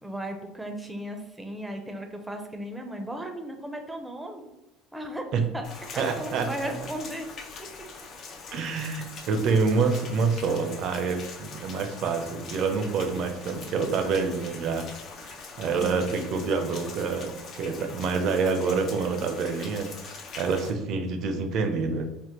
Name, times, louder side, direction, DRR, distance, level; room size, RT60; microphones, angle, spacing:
voice 1, 0.0-4.4 4.9-5.3 5.5-5.6 5.9-7.3 15.8-16.0, right 1 dB, 10° right, 4 dB, 0.6 m, -36 dB
Rain, 5.6-20.7, left 4 dB, 55° left, 0.6 m, -43 dB
voice 2, 6.0-6.9 8.5-14.9 15.2-22.1, right 4 dB, 60° right, 6 dB, 0.5 m, -27 dB
3.6 x 2.1 x 2.9 m, 0.97 s
hypercardioid pair, 80°, 0 cm